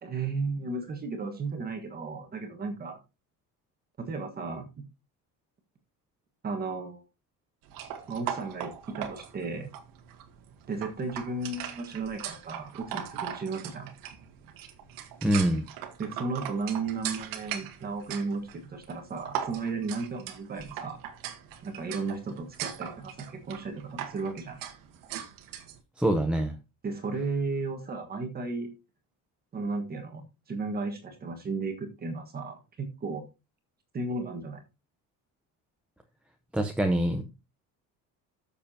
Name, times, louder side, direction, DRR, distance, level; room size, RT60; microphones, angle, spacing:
voice 1, 0.0-3.0 4.0-4.8 6.4-7.0 8.1-9.7 10.7-13.9 16.0-21.0 21.6-24.6 26.8-28.7 29.5-33.2 33.9-34.6, right 3 dB, 25° right, 4 dB, 1.5 m, -34 dB
sound 1, 7.7-25.8, right 9 dB, 75° right, 1.6 m, -40 dB
voice 2, 15.2-15.6 26.0-26.5 36.5-37.2, right 1 dB, 5° right, 5 dB, 0.7 m, -25 dB
12.5 x 6.9 x 2.8 m, 0.27 s
cardioid pair, 165°, 34 cm